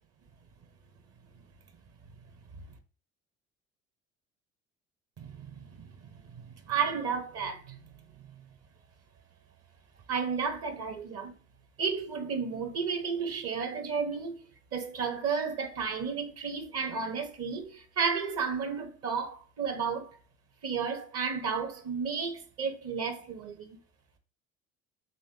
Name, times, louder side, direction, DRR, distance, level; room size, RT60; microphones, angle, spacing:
voice 1, 5.2-7.8 10.1-11.3 11.8-14.4 14.7-20.2 20.6-23.8, right 6 dB, 45° right, 0.9 m, -33 dB
5.4 x 3.0 x 2.8 m
figure-of-eight pair, 60°, 35 cm